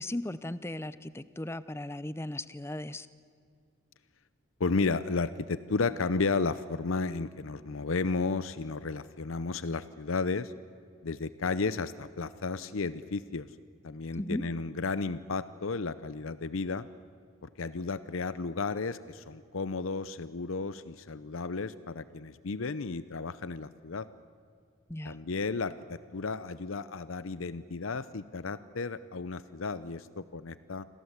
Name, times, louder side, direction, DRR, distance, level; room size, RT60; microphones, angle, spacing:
voice 1, 0.0-3.1 14.1-14.4 24.9-25.2, left 1 dB, 10° left, 15 dB, 0.6 m, -36 dB
voice 2, 4.6-10.5 11.0-13.5 13.8-16.9 17.4-24.1 25.0-30.9, left 4 dB, 75° left, 15 dB, 0.7 m, -33 dB
28.5 x 25.5 x 8.1 m, 2.3 s
head